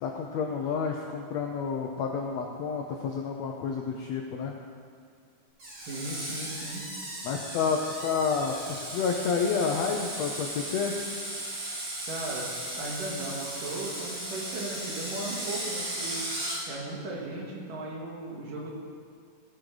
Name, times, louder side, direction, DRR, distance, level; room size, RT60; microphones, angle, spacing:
voice 1, 0.0-4.6 7.2-10.9, left 5 dB, 80° left, 1 dB, 1.5 m, -30 dB
Screech, 5.6-16.6, right 1 dB, 35° right, 1.9 m, -36 dB
voice 2, 5.9-6.8 12.1-12.5 12.7-16.2 16.7-18.7, right 2 dB, 75° right, -3 dB, 3.4 m, -37 dB
16.5 x 6.1 x 4.9 m, 2.3 s
omnidirectional pair, 3.9 m